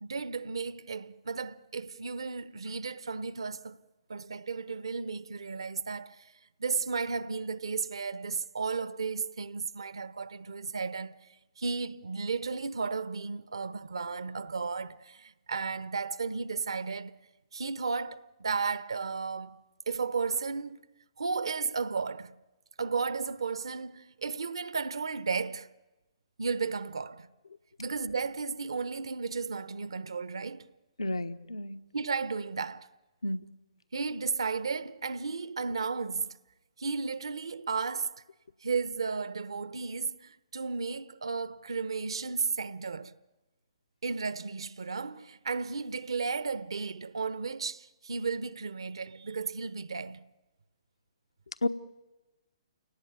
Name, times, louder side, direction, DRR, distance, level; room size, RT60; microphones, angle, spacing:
voice 1, 0.0-3.8 4.1-6.3 6.6-11.3 11.6-17.2 17.5-19.6 19.9-20.8 21.2-22.4 22.8-25.7 26.4-27.3 27.8-30.7 31.9-32.9 33.9-36.4 36.8-38.2 38.6-43.1 44.0-50.3, right 4 dB, 65° right, 1.0 m, -34 dB
voice 2, 31.0-31.8 33.2-33.4 51.6-51.7, left 2 dB, 70° left, 1.2 m, -31 dB
30.0 x 18.5 x 9.5 m
figure-of-eight pair, 125°, 3 cm